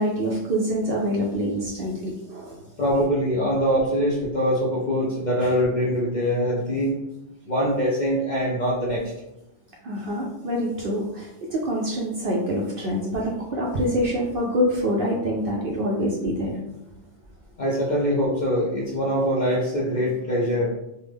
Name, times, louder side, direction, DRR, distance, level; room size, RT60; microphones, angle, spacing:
voice 1, 0.0-2.6 5.4-5.5 9.8-16.6, equal, 60° right, -2 dB, 0.6 m, -26 dB
voice 2, 2.8-6.9 7.5-9.0 17.6-20.7, equal, 55° left, -4 dB, 0.5 m, -23 dB
3.3 x 2.0 x 3.4 m, 0.88 s
omnidirectional pair, 1.3 m